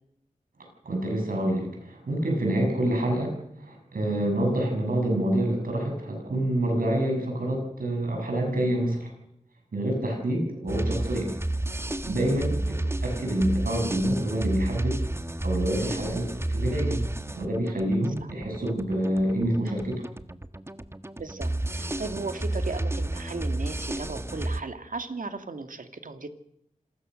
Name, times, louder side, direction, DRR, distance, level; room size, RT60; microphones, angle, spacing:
voice 1, 0.8-9.1 9.7-11.3 12.1-12.6 13.0-15.0 15.4-17.0 17.3-20.0, right 1 dB, 90° right, 2 dB, 7.6 m, -27 dB
sound 1, 10.7-24.6, right 1 dB, 20° right, 1.3 m, -31 dB
voice 2, 21.2-26.3, right 3 dB, 70° right, 7 dB, 2.2 m, -36 dB
26.5 x 20.0 x 6.5 m, 0.76 s
cardioid pair, 45°, 14 cm